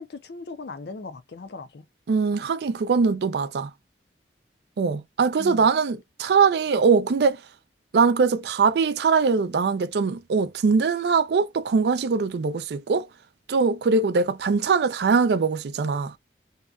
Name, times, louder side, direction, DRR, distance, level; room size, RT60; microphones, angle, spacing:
voice 1, 0.0-1.9 5.4-5.7, left 3 dB, 65° left, 0.5 m, -38 dB
voice 2, 2.1-3.7 4.8-7.4 7.9-13.1 13.5-16.1, right 5 dB, 65° right, 0.4 m, -22 dB
2.8 x 2.2 x 2.3 m
head